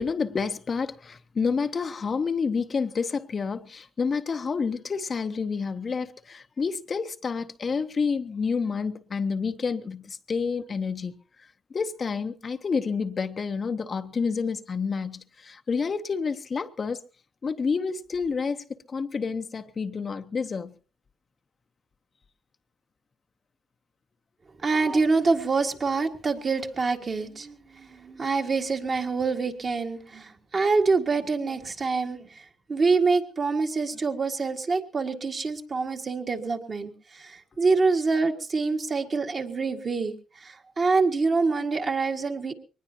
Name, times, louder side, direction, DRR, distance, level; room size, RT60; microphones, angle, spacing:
voice 1, 0.0-17.0 17.4-20.7, left 5 dB, 40° left, 0.8 m, -29 dB
voice 2, 24.6-42.5, right 4 dB, 40° right, 1.9 m, -26 dB
22.5 x 19.5 x 2.8 m
cardioid pair, 90°, 0 cm